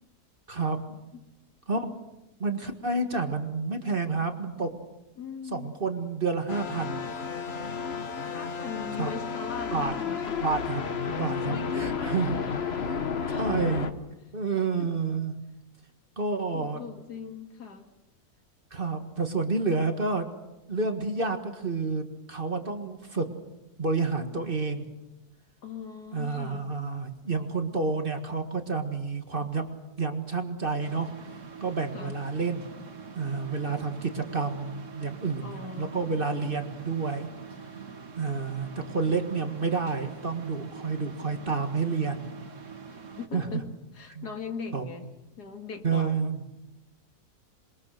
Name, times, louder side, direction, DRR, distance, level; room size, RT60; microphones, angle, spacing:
voice 1, 0.5-1.0 1.7-1.9 2.4-4.7 5.5-7.0 9.0-9.1 9.7-9.9 10.4-12.4 12.9-13.0 13.3-13.9 14.3-15.3 16.2-16.8 18.7-20.3 20.7-23.3 23.8-24.9 26.1-29.7 30.0-31.1 31.6-32.7 33.1-37.3 38.2-42.3 43.3-43.6 44.1-44.3 44.7-44.8 45.8-46.4, right 4 dB, 35° right, 6 dB, 1.8 m, -29 dB
voice 2, 5.2-5.7 8.3-10.4 11.4-12.5 13.2-13.4 14.8-14.9 16.5-17.9 25.6-26.7 31.9-32.2 35.4-36.2 43.2-43.7 43.9-45.1 45.4-46.3, left 6 dB, 75° left, 6 dB, 2.4 m, -40 dB
sound 1, 6.5-13.9, left 6 dB, 40° left, 1.3 m, -32 dB
sound 2, 30.8-43.3, right 5 dB, 50° right, 2.0 m, -44 dB
27.5 x 22.0 x 6.6 m, 0.95 s
omnidirectional pair, 1.7 m